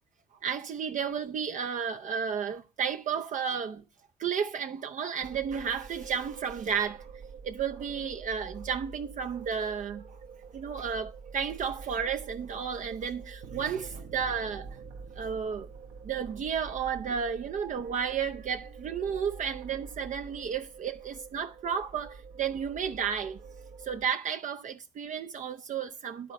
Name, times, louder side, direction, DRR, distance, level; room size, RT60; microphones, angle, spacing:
voice 1, 0.4-3.8 4.2-7.1 7.4-10.2 10.5-14.8 15.2-15.7 16.0-23.4 23.8-26.3, right 7 dB, 45° right, 0.6 m, -32 dB
sound 1, 5.2-24.1, right 5 dB, 60° right, 1.1 m, -46 dB
12.0 x 4.1 x 6.9 m
hypercardioid pair, 55°, 19 cm